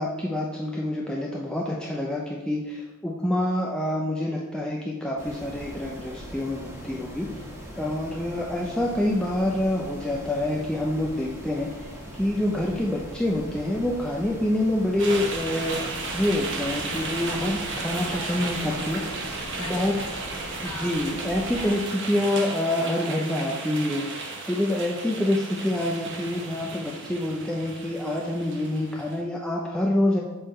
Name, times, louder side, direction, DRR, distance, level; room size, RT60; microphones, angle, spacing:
voice 1, 0.0-7.3 7.8-19.0 19.6-20.0 20.6-30.2, left 1 dB, 5° left, -3 dB, 0.4 m, -27 dB
sound 1, 5.2-21.7, equal, 10° right, 1.2 m, -40 dB
sound 2, 15.0-29.2, right 3 dB, 55° right, 0.9 m, -34 dB
voice 2, 17.9-21.8, left 2 dB, 70° left, -1 dB, 1.3 m, -42 dB
7.0 x 3.6 x 4.2 m, 1.1 s
head